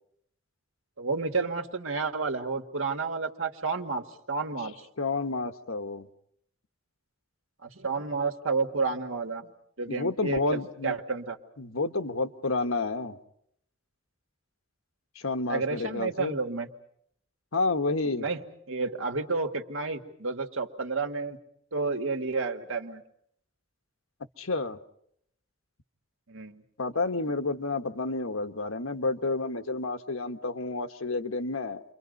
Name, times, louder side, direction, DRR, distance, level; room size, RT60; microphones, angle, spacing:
voice 1, 1.0-4.9 7.6-9.5 9.8-11.4 15.5-16.7 18.2-21.4 21.7-23.0 26.3-26.6, right 4 dB, 75° right, 5 dB, 2.0 m, -31 dB
voice 2, 5.0-6.1 9.9-11.0 11.6-13.2 15.1-16.4 17.5-18.3 24.4-24.8 26.8-31.8, left 3 dB, 85° left, 8 dB, 1.3 m, -30 dB
29.5 x 24.5 x 5.4 m, 0.70 s
head